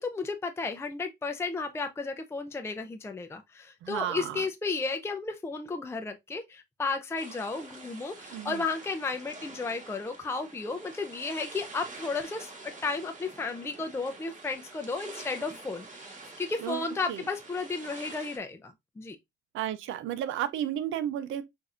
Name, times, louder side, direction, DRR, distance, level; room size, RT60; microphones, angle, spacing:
voice 1, 0.0-12.5 12.8-16.1 16.4-19.2, left 4 dB, 15° left, 0.5 m, -33 dB
voice 2, 3.8-4.5 8.3-8.6 16.6-16.8 17.1-17.2 19.5-21.4, right 11 dB, 80° right, 0.6 m, -33 dB
sound 1, 7.1-18.4, right 3 dB, 40° right, 1.9 m, -47 dB
5.7 x 2.6 x 2.4 m
cardioid pair, 90°, 20 cm